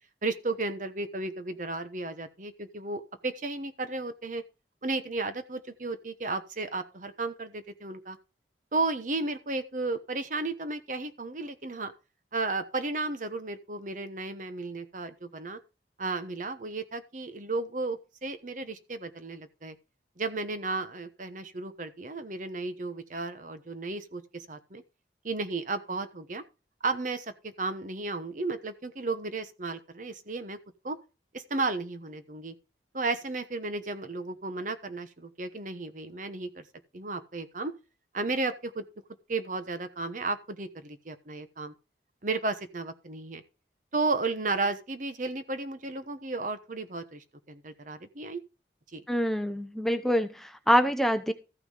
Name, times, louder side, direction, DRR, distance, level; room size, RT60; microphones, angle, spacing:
voice 1, 0.2-4.4 4.8-8.2 8.7-11.9 12.3-15.6 16.0-19.7 20.2-24.8 25.2-26.4 26.8-30.6 30.8-31.0 31.3-32.5 32.9-36.6 36.9-37.7 38.1-38.8 39.3-41.7 42.2-43.4 43.9-48.4 48.9-49.0, right 3 dB, 45° right, 1.1 m, -33 dB
voice 2, 49.1-51.3, equal, ahead, 0.7 m, -25 dB
14.0 x 6.0 x 5.1 m
head